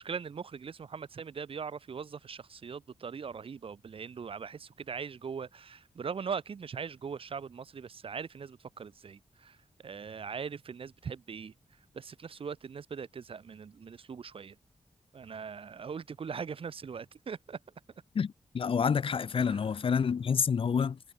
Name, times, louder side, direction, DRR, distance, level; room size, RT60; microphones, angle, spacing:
voice 1, 0.0-9.6 9.8-11.5 11.9-14.5 15.1-17.6 19.5-19.6, right 6 dB, 60° right, 1.1 m, -40 dB
voice 2, 18.1-21.0, left 6 dB, 60° left, 0.7 m, -28 dB
wide cardioid pair, 85°, 10 cm